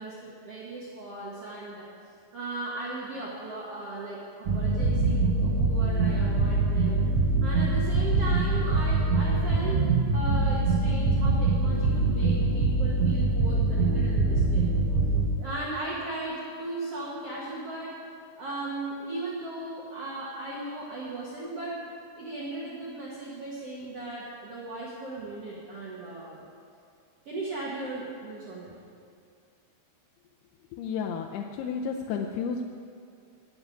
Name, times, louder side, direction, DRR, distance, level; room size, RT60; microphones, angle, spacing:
voice 1, 0.0-1.9 2.3-7.0 7.4-9.8 10.1-14.7 15.4-18.0 18.4-21.8 22.2-26.4 27.3-28.7, right 2 dB, 55° right, -5 dB, 1.9 m, -37 dB
sound 1, 4.5-15.3, right 3 dB, 75° right, 1.4 m, -24 dB
voice 2, 30.7-32.6, left 6 dB, 90° left, 1 dB, 2.7 m, -32 dB
12.5 x 6.9 x 9.9 m, 2.4 s
omnidirectional pair, 4.5 m